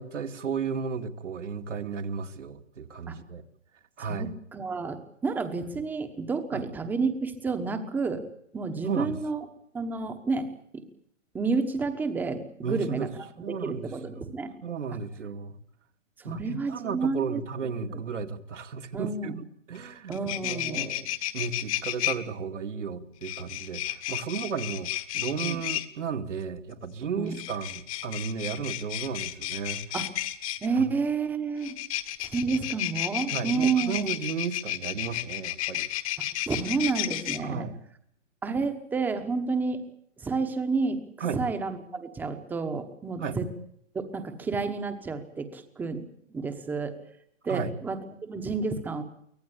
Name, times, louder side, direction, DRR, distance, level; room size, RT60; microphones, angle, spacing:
voice 1, 0.0-3.4 4.0-4.3 6.5-6.6 8.8-9.2 12.6-13.1 13.4-14.2 14.6-15.6 16.2-20.2 20.4-29.9 30.8-30.9 33.3-35.9 37.4-37.8 41.2-41.4 43.2-43.4 47.5-47.7, right 6 dB, 70° right, 5 dB, 2.5 m, -34 dB
voice 2, 4.1-8.2 8.5-9.4 9.7-10.8 11.3-14.5 16.2-18.0 18.9-19.3 20.1-20.9 25.4-25.6 27.2-27.4 29.9-30.1 30.6-31.8 32.2-34.1 36.5-37.7 38.4-39.8 40.2-41.0 41.3-43.5 43.9-46.0 46.3-46.9 47.4-49.0, right 4 dB, 5° right, 8 dB, 1.1 m, -30 dB
sound 1, 19.8-19.9 20.1-22.2 23.2-25.9 27.3-30.7 31.6-37.4, left 15 dB, 30° left, 1.3 m, -32 dB
24.5 x 17.5 x 8.5 m, 0.71 s
hypercardioid pair, 165°, 37 cm